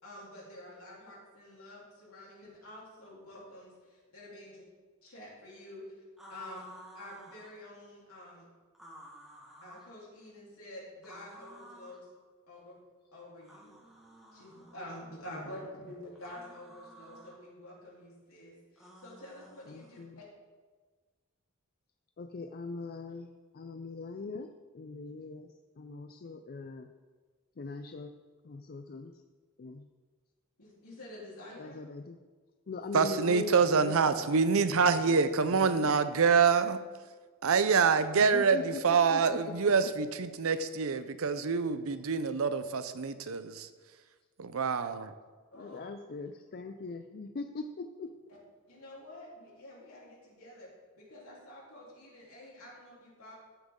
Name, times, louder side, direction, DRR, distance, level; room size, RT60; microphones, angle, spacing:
voice 1, 0.0-4.7 5.0-5.9 6.3-6.7 6.9-8.4 9.6-12.1 12.5-12.8 13.1-13.7 14.3-20.2 30.6-31.8 45.5-45.8 48.3-48.4 48.7-50.7 51.0-53.3, left 1 dB, 70° left, -5 dB, 3.6 m, -48 dB
sound 1, 6.2-7.6 8.7-9.9 11.0-12.0 13.4-14.8 16.2-17.4 18.8-20.1, equal, ahead, 1.6 m, -53 dB
voice 2, 19.7-20.2 22.2-23.3 23.5-24.5 24.7-25.5 25.8-26.9 27.6-28.1 28.5-29.1 29.6-29.8 31.6-32.2 32.7-34.3 34.7-34.9 35.5-35.9 38.2-38.8 39.1-39.4 45.6-48.1, left 3 dB, 45° left, 7 dB, 0.4 m, -41 dB
voice 3, 32.9-36.8 37.4-43.7 44.4-45.1, right 5 dB, 65° right, 12 dB, 0.6 m, -26 dB
14.0 x 7.1 x 3.7 m, 1.4 s
head